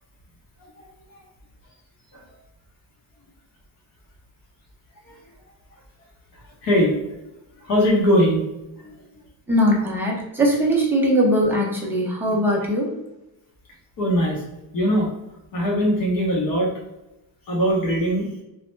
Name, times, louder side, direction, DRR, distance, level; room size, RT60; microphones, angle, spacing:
voice 1, 6.6-6.9 7.6-8.4 8.8-9.0 14.0-14.4 14.7-15.1 15.5-16.7 17.5-18.3, equal, 50° left, -2 dB, 0.7 m, -20 dB
voice 2, 9.5-13.0, equal, 5° right, -4 dB, 0.4 m, -20 dB
3.1 x 2.0 x 3.1 m, 0.94 s
cardioid pair, 180°, 46 cm